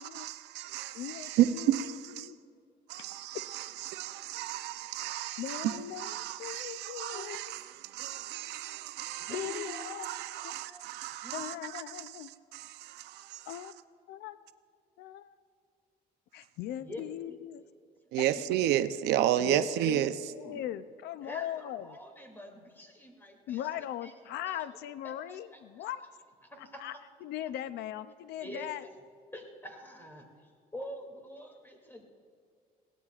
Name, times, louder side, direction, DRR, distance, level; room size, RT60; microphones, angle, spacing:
voice 1, 0.0-2.3 2.9-13.7 18.1-20.2, right 12 dB, 85° right, 0.6 m, -32 dB
voice 2, 0.9-1.9 2.2-2.4 5.4-7.4 9.3-10.1 11.3-12.3 13.5-13.7 14.1-14.4 15.0-15.4 16.3-17.6 19.4-21.9 23.5-26.0 26.8-26.9 27.2-28.8, left 12 dB, 80° left, 0.5 m, -39 dB
voice 3, 7.1-7.5 9.3-10.0 10.4-11.7 16.8-17.0 18.4-18.5 20.4-20.6 21.2-24.1 24.4-24.6 25.0-25.9 26.4-26.9 28.4-28.9 29.3-32.0, equal, 10° left, 2.6 m, -47 dB
22.0 x 17.5 x 2.4 m
cardioid pair, 110°, 17 cm